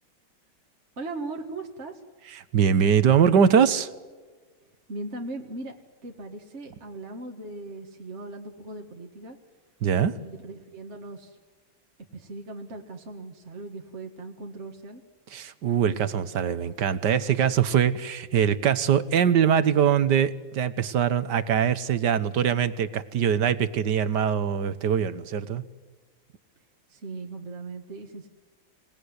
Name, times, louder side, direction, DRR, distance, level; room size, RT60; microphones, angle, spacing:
voice 1, 1.0-1.9 4.9-5.7 6.0-9.4 10.1-11.4 12.1-15.0 26.9-28.3, right 2 dB, 35° right, 2 dB, 2.0 m, -38 dB
voice 2, 2.5-3.9 9.8-10.1 15.3-25.6, right 8 dB, 65° right, 13 dB, 1.7 m, -22 dB
27.0 x 19.0 x 9.7 m, 1.4 s
omnidirectional pair, 2.1 m